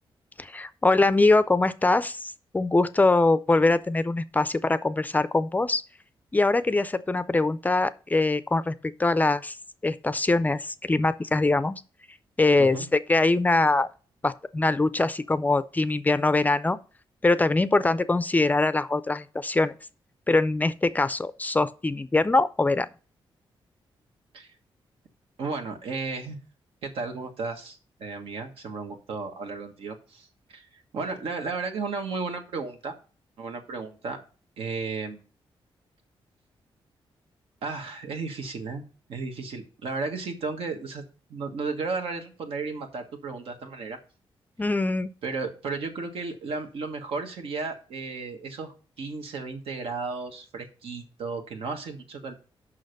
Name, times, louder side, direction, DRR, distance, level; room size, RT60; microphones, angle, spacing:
voice 1, 0.4-5.8 6.3-9.5 9.8-11.8 12.4-13.9 14.2-16.8 17.2-19.7 20.3-22.9 44.6-45.1, left 2 dB, 15° left, 0.4 m, -23 dB
voice 2, 25.4-26.4 26.8-30.7 30.9-32.9 33.4-34.2 34.6-35.2 37.6-41.0 41.3-44.0 45.2-52.3, right 4 dB, 85° right, 1.6 m, -34 dB
6.4 x 5.7 x 6.5 m
wide cardioid pair, 130°, 9 cm